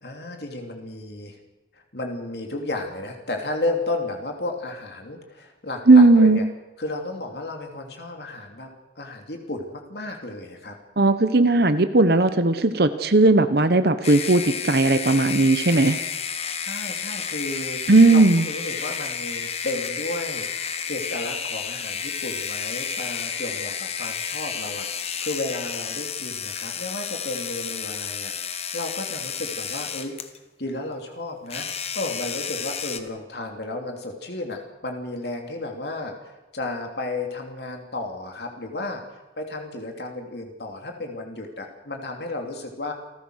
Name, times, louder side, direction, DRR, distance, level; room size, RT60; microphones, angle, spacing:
voice 1, 0.0-1.4 1.7-6.4 6.8-8.7 9.0-10.8 16.6-17.8 18.1-30.2 30.6-31.7 31.9-42.9, left 2 dB, 60° left, 3 dB, 2.9 m, -33 dB
voice 2, 5.9-6.4 11.0-16.0 17.9-18.4, right 2 dB, 60° right, 10 dB, 1.1 m, -17 dB
sound 1, 14.0-30.4 31.5-33.0, left 7 dB, 35° left, 1.4 m, -31 dB
28.0 x 15.0 x 6.5 m, 1.1 s
head